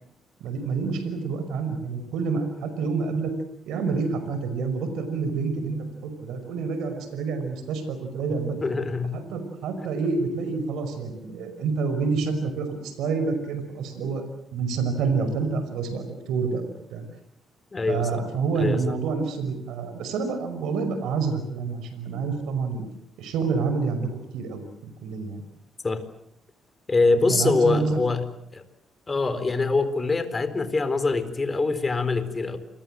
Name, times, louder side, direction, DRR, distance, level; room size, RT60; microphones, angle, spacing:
voice 1, 0.4-3.3 3.7-5.8 6.0-8.6 9.1-14.2 14.5-17.1 17.9-22.8 23.2-25.4 27.1-28.0 29.3-29.4, right 4 dB, 85° right, 9 dB, 5.5 m, -28 dB
voice 2, 8.6-9.2 17.7-18.2 18.5-18.9 25.8-26.0 26.9-28.2 28.5-28.6 29.1-32.6, left 3 dB, 25° left, 11 dB, 4.0 m, -24 dB
28.5 x 22.5 x 7.8 m, 0.73 s
cardioid pair, 90°, 0 cm